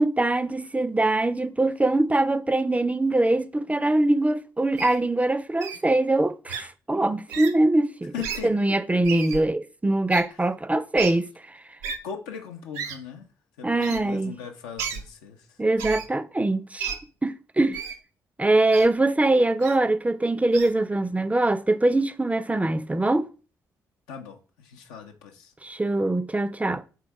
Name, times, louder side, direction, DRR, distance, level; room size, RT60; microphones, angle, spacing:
voice 1, 0.0-8.1 8.4-11.3 13.6-14.3 15.6-16.9 17.2-17.8 18.4-23.3 25.6-26.8, right 2 dB, 15° right, 0.4 m, -23 dB
Wild animals, 4.8-5.0 5.6-5.8 6.5-6.6 7.3-7.5 8.2-8.4 9.0-9.4 10.1-10.2 11.0-11.1 11.8-12.0 12.7-13.0 13.8-14.0 14.8-15.0 15.8-16.1 16.8-17.0 17.7-18.0 18.7-18.8 19.6-19.8 20.5-20.7, right 7 dB, 90° right, 0.4 m, -32 dB
voice 2, 8.1-9.0 10.3-10.5 12.0-13.3 13.6-15.6 24.1-25.5, left 7 dB, 85° left, 0.5 m, -39 dB
3.5 x 3.0 x 4.5 m
hypercardioid pair, 45°, 9 cm